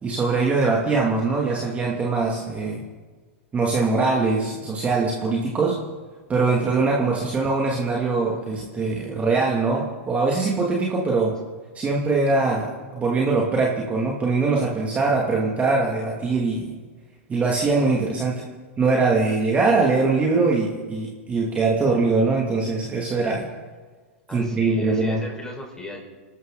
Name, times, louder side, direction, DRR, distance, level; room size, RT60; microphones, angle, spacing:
voice 1, 0.0-2.8 3.5-5.8 6.3-11.3 11.7-12.7 12.9-16.6 17.3-18.4 18.8-23.4 24.3-25.2, right 3 dB, 20° right, -2 dB, 2.6 m, -22 dB
voice 2, 24.3-26.0, left 2 dB, 10° left, 0 dB, 5.0 m, -37 dB
27.0 x 13.0 x 4.0 m, 1.4 s
hypercardioid pair, 125°, 7 cm